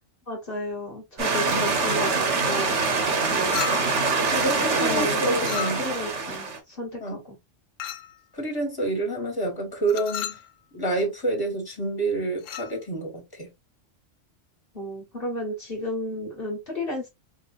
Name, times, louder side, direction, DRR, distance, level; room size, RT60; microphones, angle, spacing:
voice 1, 0.3-3.0 3.3-3.6 4.5-7.3 14.7-17.1, left 1 dB, 50° left, 1.5 m, -33 dB
voice 2, 1.2-1.7 4.3-5.8 7.0-7.2 8.3-10.4 10.7-13.5, right 2 dB, 20° left, 1.7 m, -28 dB
sound 1, 1.2-6.6, right 4 dB, 70° right, 1.4 m, -24 dB
Chink clink, 3.5-4.1 5.4-6.1 7.8-8.2 9.9-10.5 12.4-12.7, left 10 dB, 90° left, 1.0 m, -33 dB
4.8 x 2.7 x 2.6 m
omnidirectional pair, 1.3 m